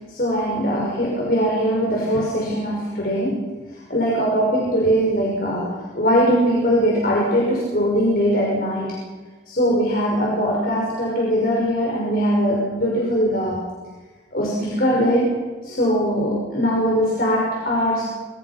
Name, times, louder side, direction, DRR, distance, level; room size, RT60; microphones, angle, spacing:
voice 1, 0.1-3.4 3.9-9.0 9.5-13.6 14.3-15.3 15.6-18.0, equal, 55° left, -3 dB, 5.7 m, -21 dB
26.5 x 22.5 x 6.0 m, 1.3 s
head